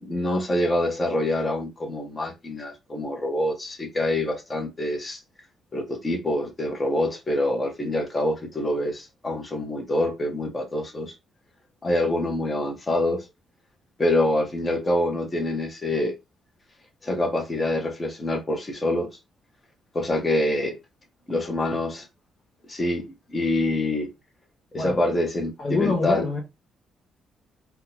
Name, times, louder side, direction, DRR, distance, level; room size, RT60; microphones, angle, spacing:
voice 1, 0.0-5.2 5.7-11.1 11.8-13.3 14.0-16.2 17.0-19.1 19.9-20.8 21.3-22.1 22.7-24.1 24.7-26.2, left 1 dB, 25° left, 1.2 m, -26 dB
voice 2, 25.6-26.4, left 3 dB, 45° left, 1.0 m, -25 dB
3.6 x 2.4 x 2.9 m
cardioid pair, 90°, 0 cm